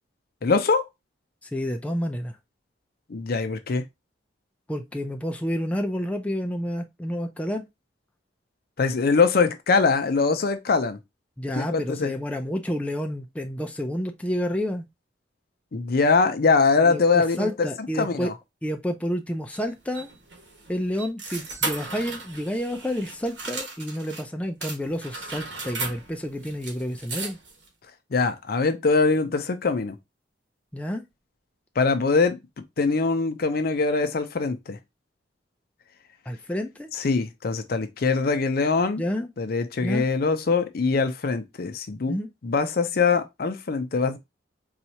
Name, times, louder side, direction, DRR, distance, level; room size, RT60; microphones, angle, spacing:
voice 1, 0.4-0.9 3.1-3.8 8.8-11.0 11.6-12.1 15.7-18.3 28.1-30.0 31.8-32.4 32.8-34.8 36.9-39.0 39.4-42.2 42.4-44.2, left 4 dB, 55° left, 0.5 m, -23 dB
voice 2, 1.4-2.3 4.7-7.6 11.4-14.8 16.8-18.3 18.6-20.1 20.7-27.4 30.7-31.0 36.3-36.9 39.0-39.3 39.8-40.1 42.1-42.3, equal, 5° left, 0.4 m, -29 dB
sound 1, 19.5-24.2 24.6-27.7, right 4 dB, 85° right, 1.4 m, -36 dB
4.1 x 2.4 x 2.7 m
head